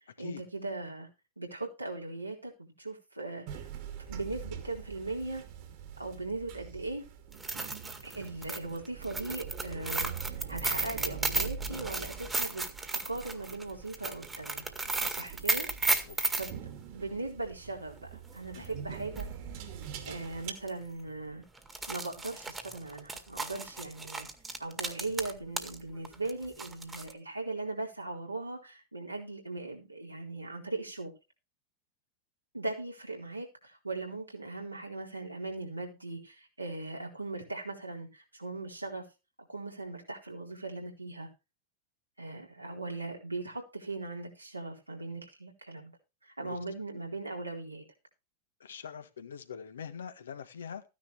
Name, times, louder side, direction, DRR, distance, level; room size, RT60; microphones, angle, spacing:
voice 1, 0.2-1.1 1.4-3.7 4.1-5.4 6.0-7.1 8.0-12.6 13.0-14.6 15.1-15.7 16.4-19.3 19.5-19.6 20.1-21.4 21.9-24.3 24.6-31.1 32.5-39.0 39.5-41.3 42.2-45.9 46.2-47.8, right 2 dB, 85° right, 3.9 m, -39 dB
sound 1, 3.5-20.5, right 7 dB, 45° right, 2.5 m, -44 dB
sound 2, 7.3-16.5 18.7-18.8 19.1-19.2 20.0-20.3 20.6-20.7 21.6-25.8 26.0-27.1, right 3 dB, 10° right, 1.9 m, -34 dB
voice 2, 15.8-16.4 18.5-18.7 46.4-46.6 48.6-50.8, left 7 dB, 65° left, 1.5 m, -44 dB
14.5 x 10.0 x 3.3 m
figure-of-eight pair, 90°, 0 cm